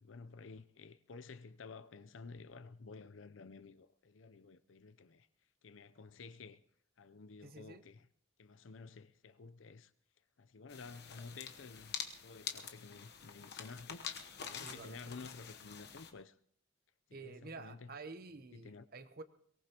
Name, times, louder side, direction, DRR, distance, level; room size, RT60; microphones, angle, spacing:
voice 1, 0.0-5.3 5.6-6.6 7.0-8.1 8.4-9.9 10.4-12.0 12.2-16.4 17.1-18.0 18.5-18.9, left 4 dB, 75° left, 0.6 m, -52 dB
voice 2, 7.4-7.8 14.6-15.2 17.1-19.2, right 3 dB, 50° right, 0.9 m, -50 dB
sound 1, 10.7-16.1, left 7 dB, 55° left, 1.0 m, -46 dB
23.0 x 18.5 x 3.0 m
head